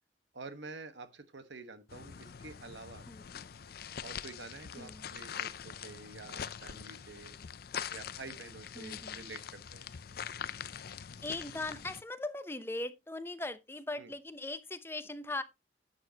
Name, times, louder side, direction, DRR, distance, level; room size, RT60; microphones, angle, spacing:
voice 1, 0.3-3.1 4.0-7.3 7.9-9.9 14.0-14.1, right 3 dB, 80° right, 1.3 m, -48 dB
sound 1, 1.9-12.0, left 8 dB, 55° left, 0.5 m, -43 dB
voice 2, 3.0-3.4 4.8-5.1 8.8-9.2 11.2-15.4, left 2 dB, 15° left, 0.7 m, -40 dB
11.0 x 8.0 x 2.9 m
head